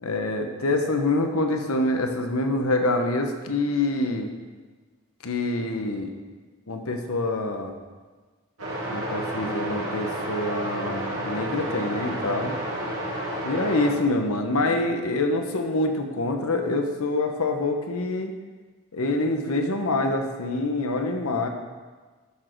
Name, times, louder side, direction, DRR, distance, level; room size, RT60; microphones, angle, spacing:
voice 1, 0.0-4.3 5.2-6.1 6.7-7.7 8.9-12.5 13.4-18.3 18.9-21.5, left 2 dB, 75° left, 5 dB, 1.0 m, -26 dB
sound 1, 8.6-13.9, right 1 dB, 75° right, 2.5 m, -30 dB
11.5 x 6.4 x 4.6 m, 1.4 s
head